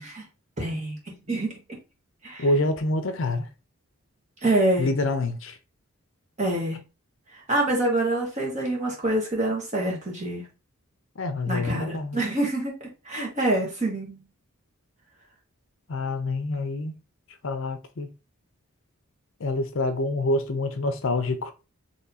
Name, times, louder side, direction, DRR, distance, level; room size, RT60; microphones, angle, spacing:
voice 1, 0.6-1.0 1.3-1.6 2.2-2.4 4.4-4.9 6.4-6.8 7.5-10.4 11.5-12.7 13.0-14.2, right 1 dB, 30° right, 1.4 m, -26 dB
voice 2, 2.4-3.5 4.8-5.6 11.2-12.2 15.9-16.9 17.4-18.1 19.4-21.5, left 2 dB, 60° left, 0.5 m, -26 dB
4.3 x 3.1 x 2.7 m
head